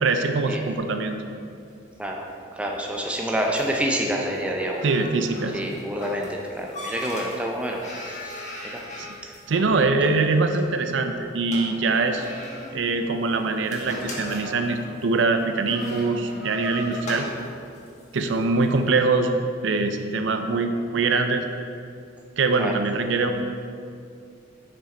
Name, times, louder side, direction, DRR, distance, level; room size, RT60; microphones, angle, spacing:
voice 1, 0.0-1.2 4.8-5.6 9.0-9.1 9.5-12.3 12.7-17.3 18.1-19.3 19.6-21.5 22.4-23.6, right 3 dB, 70° right, 7 dB, 0.5 m, -23 dB
sound 1, 1.5-18.8, left 1 dB, 40° left, 1.4 m, -39 dB
voice 2, 2.6-4.8 5.5-7.8 8.2-8.3 8.7-8.8 22.6-22.7, equal, 5° right, 0 dB, 0.5 m, -27 dB
7.1 x 6.1 x 4.3 m, 2.4 s
head